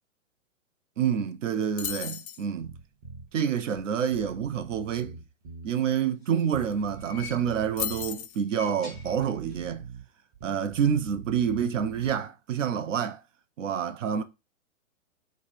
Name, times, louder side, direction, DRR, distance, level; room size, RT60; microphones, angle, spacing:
voice 1, 1.0-2.7 3.3-5.2 5.6-9.8 10.4-13.2 13.6-14.2, right 8 dB, 70° right, 0.5 m, -28 dB
sound 1, 1.8-2.4 6.4-6.5 6.7-7.0 7.8-8.4, left 11 dB, 85° left, 0.6 m, -34 dB
Bass guitar, 2.6-3.3 3.8-3.9 4.1-5.7 6.5-8.1 8.9-10.0 10.3-12.2, right 4 dB, 35° right, 1.0 m, -44 dB
sound 2, 6.1-7.8 8.3-9.7 10.0-10.1 11.2-11.3, left 4 dB, ahead, 0.4 m, -48 dB
3.2 x 2.1 x 4.1 m
hypercardioid pair, 125°, 40 cm